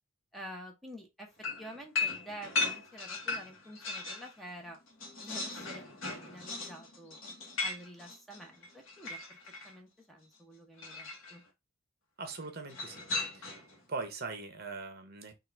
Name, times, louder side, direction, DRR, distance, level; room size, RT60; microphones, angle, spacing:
voice 1, 0.3-1.3 1.6-4.8 5.2-7.2 7.6-9.4 9.6-11.4, equal, ahead, 0.8 m, -48 dB
sound 1, 1.4-4.3 4.7-9.7 10.8-11.4 12.7-13.8, left 4 dB, 70° left, 1.0 m, -37 dB
voice 2, 12.2-13.6 13.9-15.3, right 4 dB, 45° right, 0.9 m, -41 dB
3.7 x 2.4 x 4.3 m
head